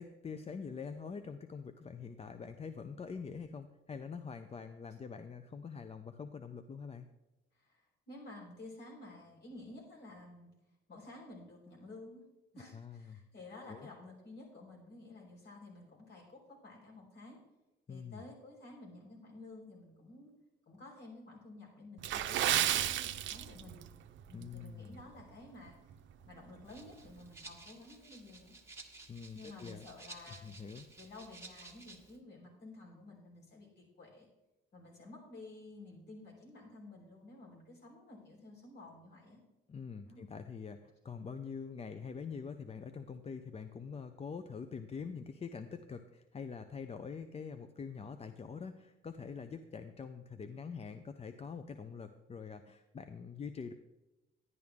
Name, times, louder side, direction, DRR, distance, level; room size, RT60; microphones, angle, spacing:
voice 1, 0.0-7.1 12.5-13.2 13.7-13.9 17.9-18.2 24.3-25.0 29.1-29.8 30.3-30.9 39.7-53.7, left 5 dB, 30° left, 9 dB, 0.6 m, -45 dB
voice 2, 7.5-10.5 10.9-12.2 12.5-17.4 17.9-20.3 20.7-23.8 24.3-25.8 26.3-28.6 29.3-30.6 31.0-34.3 34.7-39.4 40.0-40.2, left 2 dB, 60° left, -2 dB, 4.5 m, -52 dB
Water / Splash splatter, 22.0-23.9 24.2-24.4 25.0-25.2 25.7-25.8, right 12 dB, 75° right, 0.6 m, -32 dB
Rattle (instrument), 26.6-32.2, right 3 dB, 15° right, 1.4 m, -54 dB
11.0 x 10.5 x 3.6 m, 1.0 s
cardioid pair, 90°, 20 cm